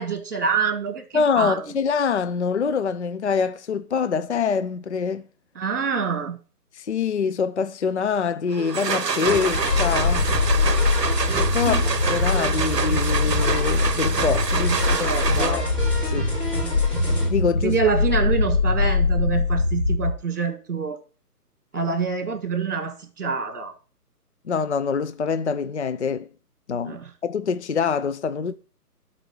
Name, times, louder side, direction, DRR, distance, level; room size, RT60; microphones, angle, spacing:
voice 1, 0.0-1.0 1.4-1.6 5.6-6.4 11.7-11.8 14.7-15.6 17.6-21.0 21.7-23.7 26.9-27.1, right 5 dB, 50° right, 1.8 m, -26 dB
voice 2, 1.1-5.2 6.8-10.3 11.3-15.1 15.4-15.7 16.0-16.4 17.3-17.8 24.5-26.3 26.7-28.5, left 6 dB, 45° left, 0.5 m, -25 dB
sound 1, 8.5-15.9, right 5 dB, 90° right, 0.7 m, -27 dB
sound 2, 9.3-17.3, right 1 dB, 10° left, 3.2 m, -31 dB
sound 3, 9.5-20.2, left 3 dB, 65° left, 2.0 m, -23 dB
12.0 x 4.3 x 6.3 m
figure-of-eight pair, 140°, 48 cm